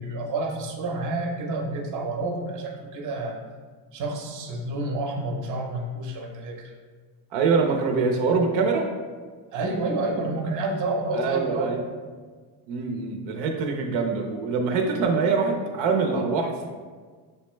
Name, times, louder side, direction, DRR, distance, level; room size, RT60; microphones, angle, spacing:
voice 1, 0.0-3.4 3.9-6.7 9.5-11.7, right 2 dB, 45° right, 2 dB, 0.7 m, -29 dB
voice 2, 7.3-8.9 11.1-11.8 12.7-16.7, right 4 dB, 80° right, 3 dB, 0.6 m, -24 dB
6.4 x 2.2 x 3.0 m, 1.5 s
cardioid pair, 125°, 45 cm